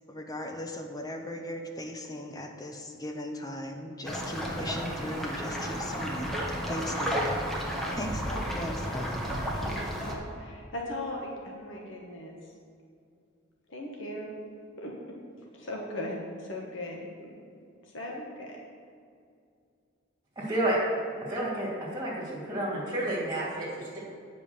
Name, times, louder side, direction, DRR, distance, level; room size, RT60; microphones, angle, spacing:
voice 1, 0.1-6.4 6.7-7.2 8.0-9.2, left 1 dB, 20° left, 4 dB, 0.7 m, -37 dB
sound 1, 4.0-10.1, equal, ahead, 1.2 m, -32 dB
voice 2, 7.1-8.0 9.5-12.4 13.7-14.4 14.8-15.2 15.5-17.3 17.8-18.6, left 1 dB, 65° left, -1 dB, 1.3 m, -39 dB
voice 3, 20.4-20.8 21.3-24.0, right 1 dB, 15° right, -6 dB, 2.5 m, -30 dB
9.3 x 5.2 x 7.0 m, 2.3 s
head